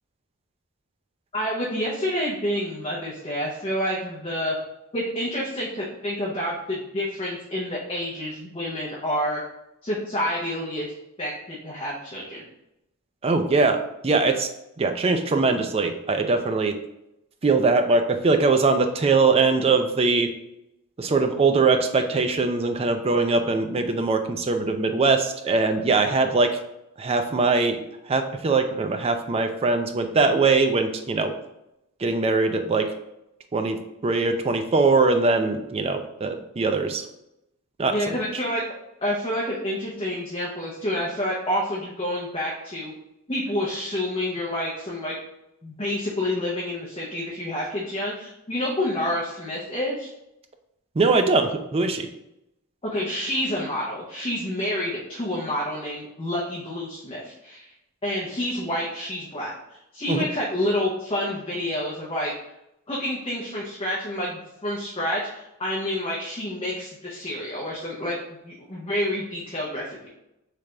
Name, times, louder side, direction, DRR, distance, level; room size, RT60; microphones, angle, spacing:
voice 1, 1.3-4.6 4.9-9.4 9.8-10.9 11.2-12.4 37.9-38.6 39.0-42.9 43.3-45.1 45.6-50.1 52.8-57.7 58.0-62.3 62.9-70.1, left 1 dB, 25° left, -5 dB, 0.7 m, -28 dB
voice 2, 13.2-14.5 14.8-16.7 17.4-20.3 21.0-26.5 27.0-27.8 28.1-31.3 32.0-32.9 33.5-33.8 34.0-37.0 37.8-37.9 38.3-38.4 51.0-52.1 60.1-60.3, right 3 dB, 25° right, 6 dB, 0.4 m, -21 dB
3.3 x 3.3 x 3.8 m, 0.86 s
head